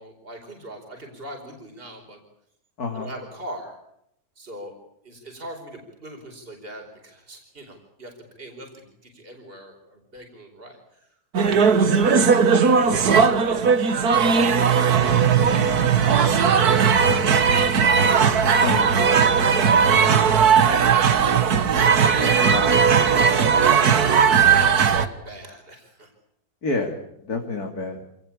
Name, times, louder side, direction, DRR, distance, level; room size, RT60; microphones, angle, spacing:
voice 1, 0.0-2.2 2.9-3.8 4.4-4.7 5.0-8.1 8.4-11.1 11.4-13.7 14.2-15.5 16.2-17.9 18.7-18.9 19.3-20.7 22.0-26.1, right 1 dB, 35° right, 3 dB, 5.0 m, -38 dB
voice 2, 2.8-3.1 11.8-12.1 18.6-18.9 22.5-22.7 26.6-27.0 27.2-28.0, left 3 dB, 80° left, 3 dB, 3.3 m, -28 dB
sound 1, 11.3-25.1, right 6 dB, 90° right, 1.9 m, -18 dB
27.5 x 19.0 x 8.6 m, 0.77 s
omnidirectional pair, 1.6 m